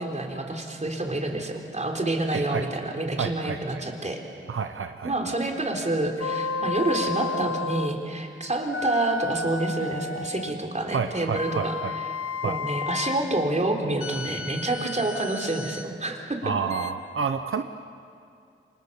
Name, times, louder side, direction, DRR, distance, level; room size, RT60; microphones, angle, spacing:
voice 1, 0.0-4.2 5.0-12.1 12.4-16.5, right 2 dB, 35° right, 2 dB, 3.8 m, -28 dB
voice 2, 2.3-2.7 3.2-3.8 4.5-5.4 10.9-11.9 12.4-12.6 16.4-17.6, right 6 dB, 75° right, 7 dB, 0.9 m, -29 dB
sound 1, 6.2-8.0 8.7-10.6 11.3-13.3 14.0-15.9 16.7-16.9, left 4 dB, 90° left, 1.1 m, -32 dB
30.0 x 26.0 x 7.1 m, 2.5 s
wide cardioid pair, 80°, 21 cm